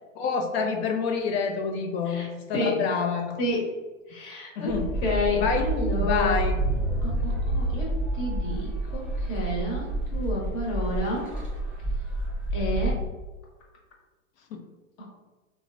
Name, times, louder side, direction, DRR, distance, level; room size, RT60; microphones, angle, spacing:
voice 1, 0.2-3.4 4.6-4.9 5.4-6.5 14.5-14.6, left 5 dB, 55° left, 4 dB, 0.4 m, -28 dB
voice 2, 4.1-4.7 5.0-6.3 7.0-11.3 12.5-13.1 15.0-15.1, left 1 dB, 35° left, -2 dB, 0.9 m, -30 dB
sound 1, 4.7-12.9, right 1 dB, 5° right, 0.5 m, -28 dB
3.1 x 2.1 x 2.4 m, 1.2 s
hypercardioid pair, 125°, 40 cm